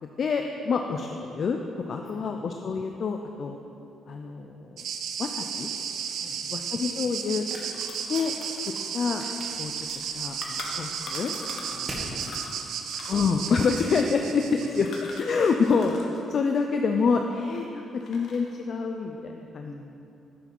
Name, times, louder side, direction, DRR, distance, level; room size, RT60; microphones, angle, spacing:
voice 1, 0.2-1.6 1.9-3.6 4.1-4.8 5.2-5.7 6.5-7.4 8.1-8.3 8.9-9.2 9.6-11.3 13.1-19.7, left 5 dB, 40° left, 4 dB, 0.5 m, -27 dB
sound 1, 4.8-15.7, right 7 dB, 70° right, 0.6 m, -34 dB
sound 2, 5.5-12.1, right 1 dB, 30° right, 1.9 m, -46 dB
sound 3, 7.1-7.2 7.5-11.9 12.2-16.2 16.4-17.6 18.0-18.6, left 3 dB, 60° left, 1.4 m, -43 dB
voice 2, 11.7-12.8 14.3-14.5 19.6-19.7, left 1 dB, 25° left, -2 dB, 1.7 m, -47 dB
9.9 x 7.3 x 5.4 m, 2.8 s
cardioid pair, 160°, 0 cm